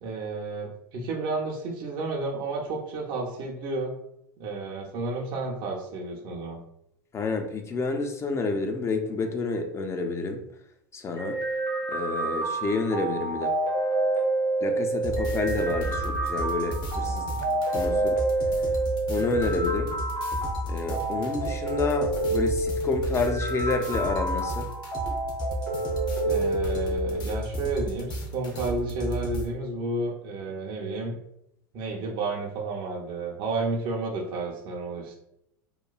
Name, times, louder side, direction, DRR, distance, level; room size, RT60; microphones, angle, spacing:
voice 1, 0.0-4.0 4.4-6.6 17.0-17.6 26.2-31.2 31.7-35.2, right 3 dB, 50° right, -1 dB, 0.6 m, -31 dB
voice 2, 7.1-10.4 10.9-11.4 11.9-13.6 14.6-17.3 17.7-18.2 19.1-20.0 20.7-24.7, left 3 dB, 25° left, 5 dB, 0.4 m, -29 dB
sound 1, 11.2-27.2, right 2 dB, 70° left, 1.2 m, -28 dB
sound 2, 15.0-29.5, equal, 40° left, 0.8 m, -33 dB
3.0 x 2.2 x 2.3 m, 0.77 s
hypercardioid pair, 85°, 11 cm